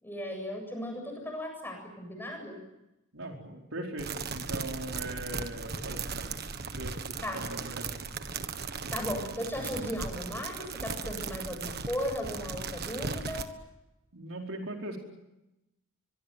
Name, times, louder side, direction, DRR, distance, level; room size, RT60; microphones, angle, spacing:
voice 1, 0.0-2.7 7.2-7.4 8.9-13.5, left 1 dB, 10° left, 3 dB, 7.7 m, -36 dB
voice 2, 3.1-6.3 6.8-8.1 14.1-15.0, right 1 dB, 70° right, 2 dB, 4.7 m, -40 dB
sound 1, 4.0-13.5, right 4 dB, 50° right, 1.6 m, -37 dB
24.0 x 23.0 x 9.3 m, 0.93 s
head